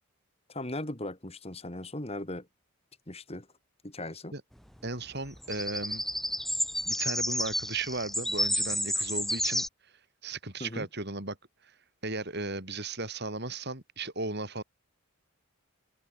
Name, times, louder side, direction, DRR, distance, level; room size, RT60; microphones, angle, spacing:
voice 1, 0.5-2.5 3.1-3.5 3.8-4.3 10.6-10.9, left 1 dB, 25° left, 2.3 m, -38 dB
voice 2, 4.8-6.0 6.9-9.6 10.2-11.4 11.6-11.7 12.0-14.6, right 3 dB, 50° right, 6.1 m, -36 dB
sound 1, 5.4-9.7, left 1 dB, ahead, 0.6 m, -30 dB
head